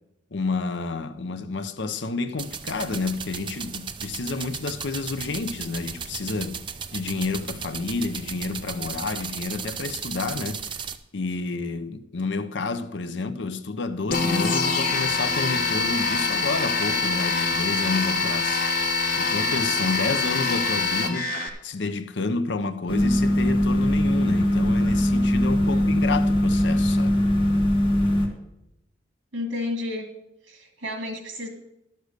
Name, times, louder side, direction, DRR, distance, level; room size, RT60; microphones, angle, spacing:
voice 1, 0.3-6.6 6.9-10.6 11.1-18.6 19.2-21.4 21.6-27.2, left 3 dB, 65° left, 0.7 m, -29 dB
sound 1, 2.4-11.0, right 6 dB, 25° right, 0.5 m, -35 dB
sound 2, 14.1-21.5, left 4 dB, 50° left, 1.2 m, -24 dB
sound 3, 22.9-28.3, left 1 dB, 25° left, 1.7 m, -21 dB
voice 2, 25.7-26.2 29.3-30.1 30.4-31.5, left 2 dB, 75° right, 2.0 m, -32 dB
12.0 x 6.6 x 6.6 m
head